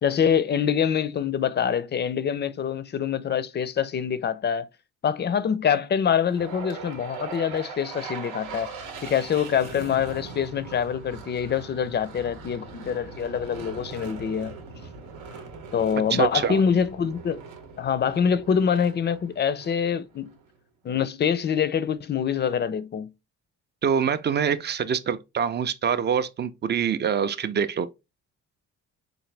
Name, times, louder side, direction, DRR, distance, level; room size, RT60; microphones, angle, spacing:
voice 1, 0.0-4.7 5.0-8.7 9.0-14.5 15.7-17.4 17.8-20.4 20.8-23.1, left 7 dB, 35° left, 0.4 m, -25 dB
sound 1, 6.3-20.5, right 4 dB, 90° right, 0.9 m, -41 dB
voice 2, 16.1-16.6 23.8-27.9, right 7 dB, 35° right, 0.4 m, -25 dB
3.9 x 2.6 x 3.2 m
cardioid pair, 90°, 30 cm